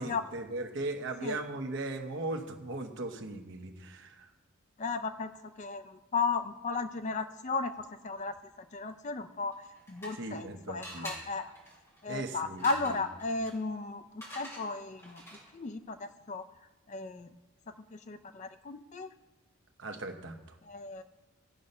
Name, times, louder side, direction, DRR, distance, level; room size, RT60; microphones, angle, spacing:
voice 1, 0.0-4.3 10.1-11.1 12.1-13.0 19.8-20.4, right 2 dB, 55° right, 5 dB, 1.0 m, -38 dB
voice 2, 4.8-5.3 5.6-5.8 6.1-7.7 8.0-8.3 8.7-9.5 9.9-11.5 12.0-14.0 14.4-15.2 15.5-16.0 16.3-16.4 16.9-17.3 17.9-19.1 20.7-21.0, left 4 dB, 30° left, 9 dB, 0.4 m, -34 dB
sound 1, 9.5-10.4 10.8-15.7, right 1 dB, 10° left, 2.3 m, -48 dB
13.5 x 5.4 x 5.4 m, 1.2 s
head